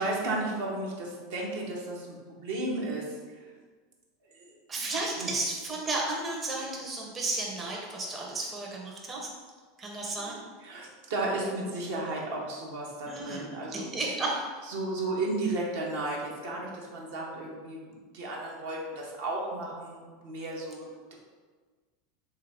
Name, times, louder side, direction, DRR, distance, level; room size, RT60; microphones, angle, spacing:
voice 1, 0.0-3.4 4.3-4.8 5.2-5.3 10.6-13.9 14.7-21.1, right 2 dB, 65° right, -3 dB, 0.7 m, -34 dB
voice 2, 4.7-9.3 9.8-10.4 13.0-13.4 13.7-14.5, right 2 dB, 25° right, -2 dB, 0.6 m, -33 dB
3.2 x 2.3 x 3.4 m, 1.5 s
hypercardioid pair, 85°, 0 cm